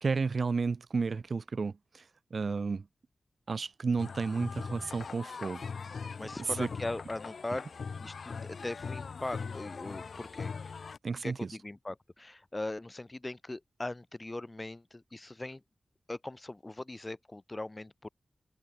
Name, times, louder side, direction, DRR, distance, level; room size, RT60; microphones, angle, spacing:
voice 1, 0.0-2.0 2.3-2.9 3.5-5.6 6.4-6.7 11.0-11.6, right 4 dB, 70° right, 1.0 m, -32 dB
sound 1, 4.0-11.0, left 5 dB, 75° left, 1.1 m, -41 dB
voice 2, 6.2-7.6 8.0-10.5 11.2-15.6 16.1-18.1, left 2 dB, 30° left, 1.7 m, -40 dB
open air
cardioid pair, 40°, 0 cm